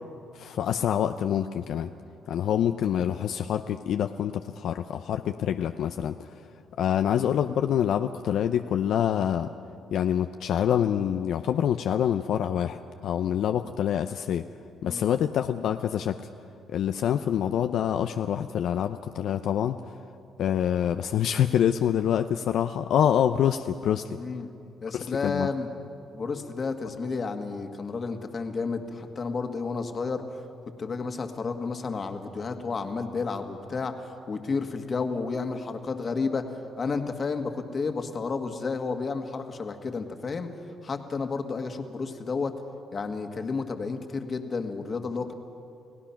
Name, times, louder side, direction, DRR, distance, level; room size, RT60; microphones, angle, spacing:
voice 1, 0.3-1.9 2.3-6.4 6.8-9.5 9.9-14.5 14.8-16.3 16.7-20.0 20.4-24.2 24.9-25.5, left 9 dB, 75° left, 8 dB, 0.5 m, -26 dB
voice 2, 24.2-24.5 24.8-25.7 26.1-30.2 30.8-36.5 36.8-40.5 40.8-42.6 42.9-45.3, left 4 dB, 40° left, 6 dB, 1.8 m, -31 dB
30.0 x 17.5 x 5.9 m, 2.6 s
cardioid pair, 90°, 0 cm